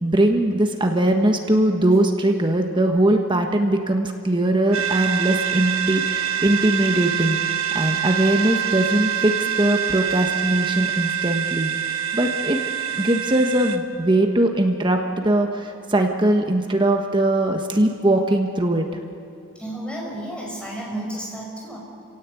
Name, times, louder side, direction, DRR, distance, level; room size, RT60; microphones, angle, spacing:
voice 1, 0.0-7.4 7.7-12.6 13.0-18.9, right 1 dB, 20° right, 3 dB, 1.3 m, -20 dB
sound 1, 4.7-13.8, right 9 dB, 85° right, 1.4 m, -25 dB
voice 2, 19.6-21.8, right 1 dB, 5° left, -3 dB, 5.5 m, -32 dB
29.5 x 17.0 x 8.4 m, 2.6 s
head